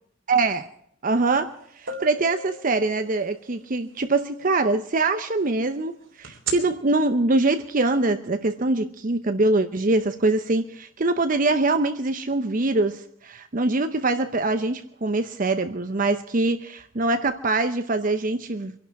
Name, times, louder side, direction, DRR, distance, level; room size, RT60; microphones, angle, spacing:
voice 1, 0.3-0.7 1.0-18.7, right 2 dB, 45° right, 9 dB, 0.7 m, -23 dB
sound 1, 1.3-1.4 1.9-3.6 6.2-6.5, right 4 dB, 80° right, 3.2 m, -34 dB
24.5 x 11.5 x 4.7 m, 0.68 s
head